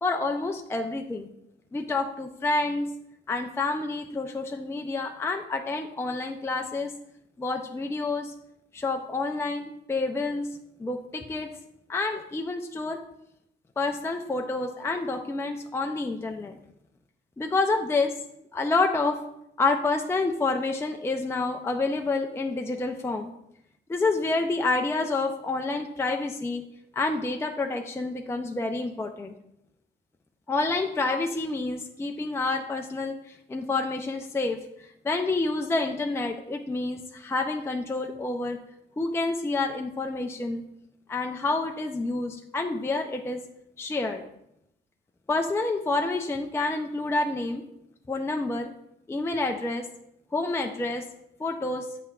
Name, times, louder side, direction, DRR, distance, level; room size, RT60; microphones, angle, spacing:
voice 1, 0.0-1.3 1.7-2.9 3.3-6.9 7.4-8.3 8.7-11.5 11.9-13.0 13.8-16.6 17.4-18.1 18.5-19.2 19.6-23.3 23.9-26.6 26.9-29.3 30.5-34.6 35.0-38.6 39.0-40.6 41.1-43.4 43.8-44.2 45.3-47.6 48.1-48.7 49.1-49.9 50.3-51.1 51.4-51.9, left 3 dB, 15° left, 3 dB, 0.4 m, -28 dB
8.4 x 5.6 x 2.3 m, 0.79 s
cardioid pair, 90°, 20 cm